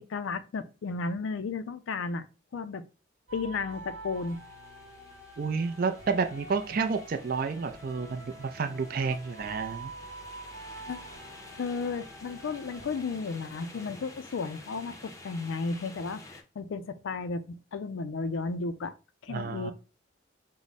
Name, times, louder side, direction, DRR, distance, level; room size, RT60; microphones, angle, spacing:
voice 1, 0.0-2.3 2.5-2.8 3.3-4.4 10.9-11.1 11.6-18.9 19.2-19.7, left 4 dB, 80° left, 0.4 m, -34 dB
sound 1, 3.3-12.9, right 2 dB, 90° right, 0.9 m, -46 dB
sound 2, 4.1-16.4, left 2 dB, 15° left, 0.6 m, -50 dB
voice 2, 5.4-9.9 19.3-19.7, right 5 dB, 45° right, 0.4 m, -30 dB
4.6 x 2.1 x 4.0 m
head